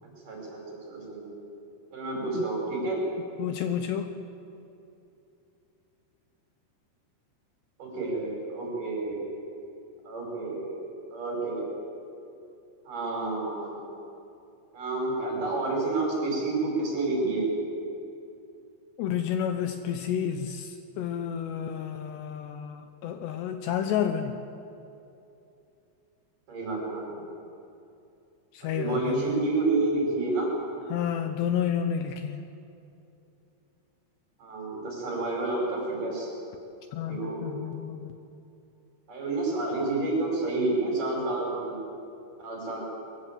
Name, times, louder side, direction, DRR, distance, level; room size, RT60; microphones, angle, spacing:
voice 1, 0.2-1.3 1.9-3.0 7.8-9.2 10.0-11.8 12.9-13.8 14.7-17.5 26.5-27.2 28.6-30.5 34.4-36.3 37.0-37.5 39.1-41.8 42.4-42.8, right 2 dB, 45° right, -2 dB, 6.8 m, -29 dB
voice 2, 3.4-4.1 19.0-24.4 28.5-29.4 30.9-32.4 36.9-38.1, left 9 dB, 80° left, 7 dB, 2.7 m, -30 dB
23.5 x 16.0 x 7.4 m, 2.7 s
omnidirectional pair, 5.4 m